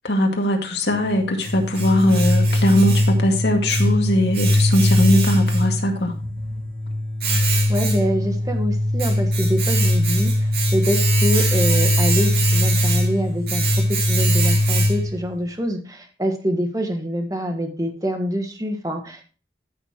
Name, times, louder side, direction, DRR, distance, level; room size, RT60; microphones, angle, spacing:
voice 1, 0.0-6.1, left 1 dB, 75° left, 2 dB, 2.1 m, -20 dB
Domestic sounds home sounds, 0.9-15.3, equal, 60° right, 2.7 m, -20 dB
voice 2, 7.7-19.2, equal, 20° right, 4 dB, 1.4 m, -25 dB
13.5 x 6.5 x 2.9 m, 0.36 s
head